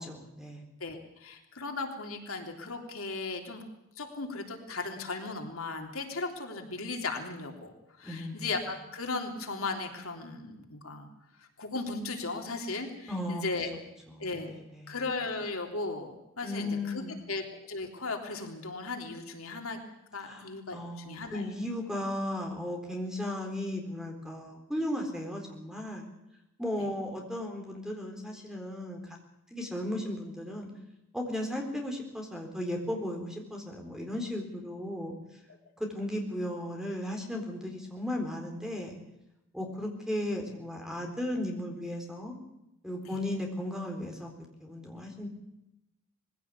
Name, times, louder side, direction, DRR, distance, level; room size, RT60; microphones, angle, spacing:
voice 1, 0.0-0.6 8.0-8.5 13.1-13.4 14.1-15.0 16.4-17.3 20.2-26.1 26.6-29.2 29.5-30.7 31.1-35.1 35.8-39.0 39.5-42.4 42.8-45.3, left 1 dB, 5° right, 2 dB, 3.9 m, -36 dB
voice 2, 0.8-3.6 4.0-7.7 8.0-11.1 11.4-13.7 14.2-14.6 14.9-17.0 17.3-17.4 17.7-19.8 20.1-21.5, left 3 dB, 80° left, 3 dB, 3.4 m, -36 dB
21.0 x 16.5 x 8.3 m, 0.88 s
head